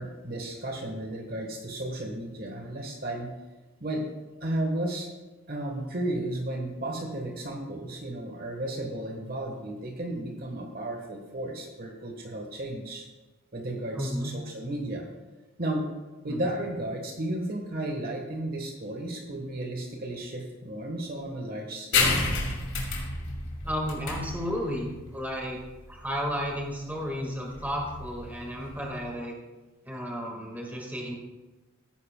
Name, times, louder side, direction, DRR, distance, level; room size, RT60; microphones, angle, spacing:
voice 1, 0.0-3.3 3.8-4.1 4.4-5.1 5.5-13.1 13.5-15.1 15.6-15.9 16.2-22.4, right 1 dB, 40° right, 2 dB, 1.3 m, -33 dB
voice 2, 13.9-14.3 16.3-16.4 23.6-25.6 25.9-29.3 29.8-31.1, equal, 10° right, -1 dB, 1.6 m, -33 dB
sound 1, 21.9-29.0, left 3 dB, 55° left, 2.4 m, -31 dB
16.0 x 9.4 x 2.2 m, 1.2 s
head